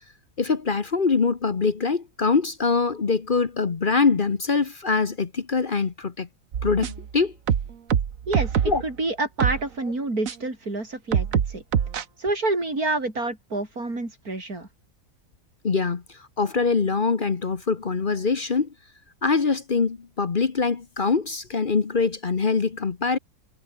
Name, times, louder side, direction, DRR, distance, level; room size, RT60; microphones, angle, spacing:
voice 1, 0.4-6.3 6.6-7.3 8.6-8.8 15.6-16.0 16.4-18.7 19.2-23.2, left 4 dB, 40° left, 1.2 m, -23 dB
sound 1, 6.5-7.1 7.5-8.9 9.4-9.6 10.3-10.4 11.1-12.0, right 8 dB, 65° right, 1.5 m, -24 dB
voice 2, 8.3-8.6 8.8-11.6 12.2-14.7, right 2 dB, 85° right, 6.3 m, -28 dB
omnidirectional pair, 1.5 m